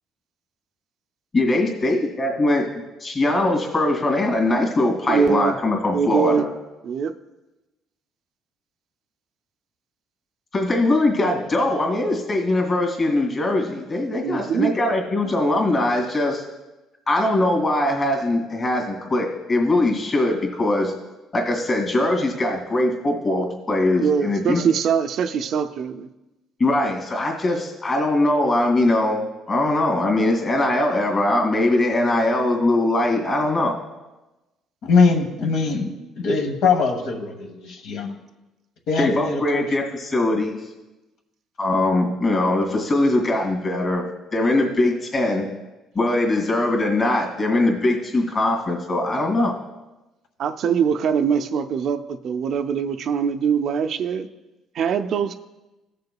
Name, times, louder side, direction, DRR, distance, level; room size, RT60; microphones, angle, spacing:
voice 1, 1.3-2.7 3.0-6.5 10.5-16.4 17.1-20.9 21.3-24.6 26.6-33.8 39.0-40.6 41.6-44.0 44.3-45.5 45.9-49.5, left 2 dB, 30° left, 1 dB, 2.2 m, -21 dB
voice 2, 5.1-5.5 5.9-6.4 6.8-7.1 14.2-14.7 24.0-26.1 50.4-54.3 54.8-55.4, right 7 dB, 55° right, 8 dB, 0.4 m, -22 dB
voice 3, 34.8-38.1 38.9-39.7, left 4 dB, 70° left, 3 dB, 1.1 m, -21 dB
16.0 x 6.7 x 2.3 m, 1.0 s
cardioid pair, 140°, 0 cm